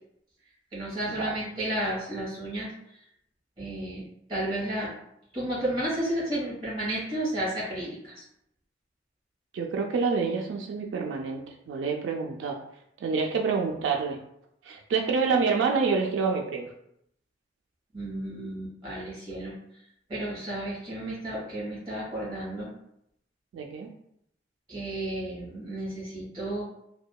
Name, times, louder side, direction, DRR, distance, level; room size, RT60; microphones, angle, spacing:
voice 1, 0.7-2.7 3.6-4.9 5.3-8.2 17.9-19.5 20.1-22.7 24.7-26.6, right 1 dB, 30° right, -6 dB, 1.4 m, -32 dB
voice 2, 9.5-12.6 13.0-14.2 14.6-16.7 23.5-23.9, right 5 dB, 90° right, 1 dB, 0.3 m, -27 dB
2.8 x 2.2 x 2.2 m, 0.76 s
head